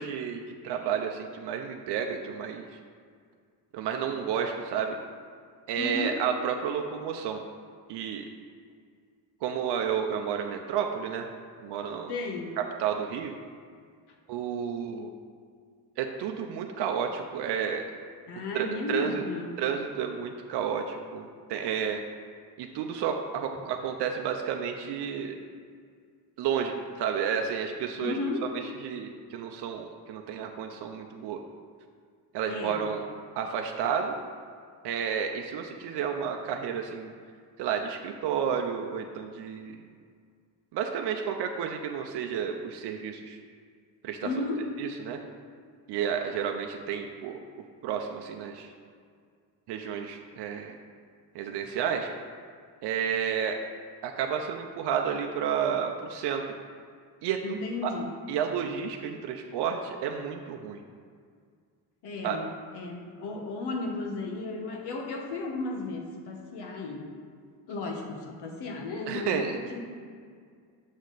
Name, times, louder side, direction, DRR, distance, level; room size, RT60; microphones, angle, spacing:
voice 1, 0.0-2.6 3.7-5.0 5.7-7.4 7.9-8.2 9.4-11.3 11.6-12.2 12.8-13.3 14.3-15.1 16.0-17.8 18.5-19.2 19.6-22.0 22.6-25.3 26.4-28.2 28.8-31.4 32.3-33.1 33.4-34.1 34.8-37.1 37.6-39.8 40.7-43.4 44.0-44.3 44.8-45.2 45.9-47.4 47.8-48.7 49.7-50.7 51.3-52.1 52.8-53.6 54.0-56.4 57.2-57.6 57.8-57.9 58.3-60.8 62.2-62.4 69.1-69.6, right 7 dB, 80° right, 3 dB, 0.6 m, -31 dB
voice 2, 5.8-6.2 12.1-12.6 18.3-19.6 28.0-28.4 32.5-32.9 44.2-44.6 57.4-58.1 62.0-67.1 67.7-69.8, left 3 dB, 75° left, 2 dB, 1.2 m, -34 dB
6.4 x 6.1 x 4.0 m, 2.1 s
cardioid pair, 165°, 40 cm